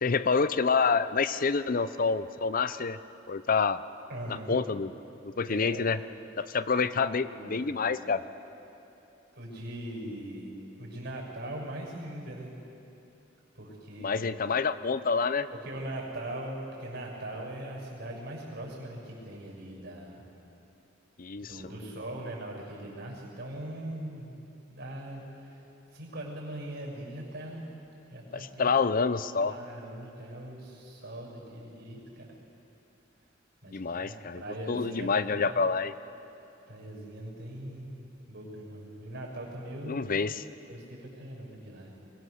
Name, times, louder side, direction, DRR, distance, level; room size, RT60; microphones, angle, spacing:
voice 1, 0.0-3.0 3.3-3.8 4.5-4.9 5.2-6.0 6.4-8.2 14.0-15.5 21.2-21.5 28.3-29.5 33.7-34.4 34.7-35.9 39.9-40.4, left 5 dB, 45° left, 14 dB, 0.6 m, -27 dB
voice 2, 4.1-4.6 5.5-5.9 6.9-7.8 9.3-12.5 13.5-14.4 15.6-20.2 21.4-24.3 24.7-25.7 25.9-27.7 28.1-28.7 29.4-32.4 33.6-35.5 36.7-38.0 38.3-40.2 40.7-41.9, right 1 dB, 55° right, -2 dB, 6.3 m, -41 dB
23.0 x 20.5 x 6.6 m, 2.9 s
head